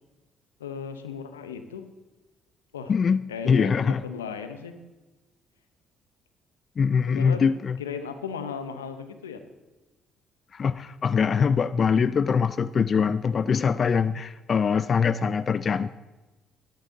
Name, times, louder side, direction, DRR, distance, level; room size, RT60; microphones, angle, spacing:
voice 1, 0.6-1.9 2.7-2.9 3.3-4.7 7.1-7.5 7.8-9.4, left 6 dB, 90° left, 9 dB, 0.8 m, -36 dB
voice 2, 2.9-4.0 6.8-7.8 10.5-15.9, left 6 dB, 45° left, 16 dB, 0.4 m, -23 dB
13.0 x 11.5 x 3.9 m, 1.1 s
hypercardioid pair, 50°, 0 cm